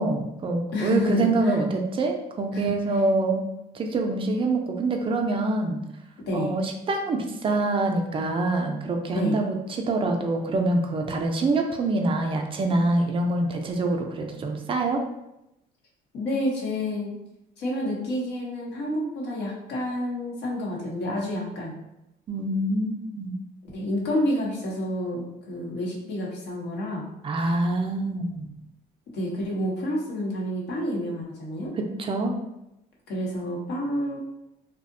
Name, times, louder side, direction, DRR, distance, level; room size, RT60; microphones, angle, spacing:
voice 1, 0.0-3.4 3.7-5.8 6.3-15.0 22.3-23.3 27.2-28.5 32.0-32.3, right 2 dB, 30° right, 3 dB, 0.3 m, -25 dB
voice 2, 0.7-1.6 2.5-2.6 6.3-6.6 9.1-9.4 16.1-17.2 17.6-21.8 23.7-27.1 29.1-31.7 33.1-34.2, left 1 dB, 80° left, -3 dB, 0.8 m, -29 dB
2.6 x 2.0 x 2.5 m, 0.87 s
cardioid pair, 110°, 17 cm